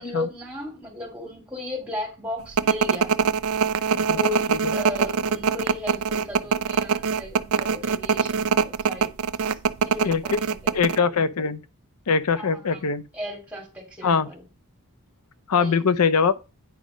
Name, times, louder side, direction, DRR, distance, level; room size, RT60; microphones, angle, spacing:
voice 1, 0.0-3.3 4.1-9.1 9.4-9.6 9.8-11.1 12.4-12.8 13.1-14.4 15.6-15.8, left 2 dB, 5° right, 3.0 m, -35 dB
sound 1, 2.6-11.0, right 6 dB, 70° right, 0.5 m, -23 dB
voice 2, 10.0-10.4 10.7-11.6 12.1-13.0 14.0-14.3 15.5-16.5, left 5 dB, 85° left, 0.6 m, -22 dB
9.4 x 5.0 x 5.1 m
head